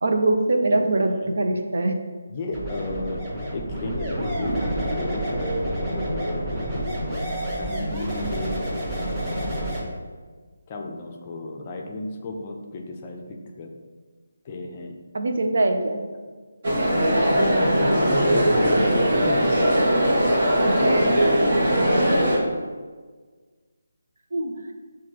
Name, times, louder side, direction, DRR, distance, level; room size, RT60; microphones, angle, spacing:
voice 1, 0.0-1.9 15.1-16.0 20.6-21.2 24.3-24.7, right 2 dB, 60° right, 5 dB, 0.4 m, -23 dB
voice 2, 2.3-3.2 3.5-6.7 7.6-9.5 10.7-13.7 14.4-15.0 17.2-19.5 20.8-21.6, left 2 dB, 30° left, 2 dB, 0.4 m, -34 dB
sound 1, 2.5-9.8, right 1 dB, 10° right, 1.3 m, -29 dB
sound 2, 4.4-8.5, right 1 dB, 5° left, 0.8 m, -35 dB
sound 3, 16.6-22.4, equal, 45° right, 0.9 m, -20 dB
5.6 x 2.2 x 3.1 m, 1.5 s
figure-of-eight pair, 155°, 0 cm